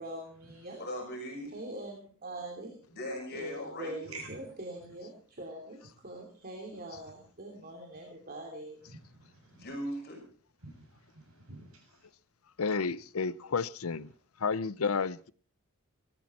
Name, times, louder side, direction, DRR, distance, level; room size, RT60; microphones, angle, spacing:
voice 1, 0.0-0.8 1.5-2.7 3.3-8.8, right 1 dB, 45° right, 3.0 m, -43 dB
voice 2, 0.8-1.5 2.9-4.2 9.5-10.2, equal, 50° left, 6.5 m, -39 dB
voice 3, 8.9-9.7 10.6-12.1, right 3 dB, 80° right, 7.1 m, -49 dB
voice 4, 12.6-14.1 14.4-15.3, left 5 dB, 80° left, 0.7 m, -31 dB
19.5 x 14.0 x 4.3 m
head